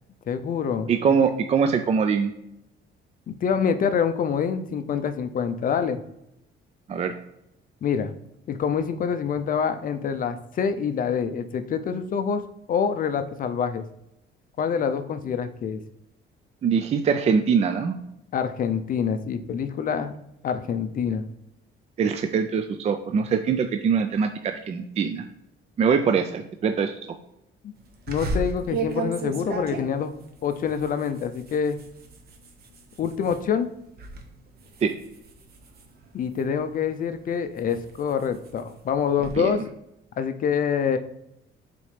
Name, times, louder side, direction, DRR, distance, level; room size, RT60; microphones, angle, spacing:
voice 1, 0.3-1.2 3.3-6.0 7.8-8.1 8.5-12.4 12.7-13.8 14.6-15.8 18.3-20.1 20.4-21.3 27.6-27.7 28.1-30.1 30.4-31.8 33.0-33.7 36.1-39.7 40.2-41.0, left 7 dB, 45° left, 9 dB, 0.5 m, -26 dB
voice 2, 0.9-2.3 6.9-7.1 16.6-18.0 22.0-25.2 25.8-27.0 34.8-34.9 39.4-39.5, right 6 dB, 35° right, 7 dB, 0.4 m, -23 dB
sound 1, 28.1-33.4 33.8-34.2 34.6-36.6 37.2-39.4, right 3 dB, 50° right, 1.0 m, -34 dB
6.9 x 4.3 x 3.3 m, 0.84 s
cardioid pair, 140°, 20 cm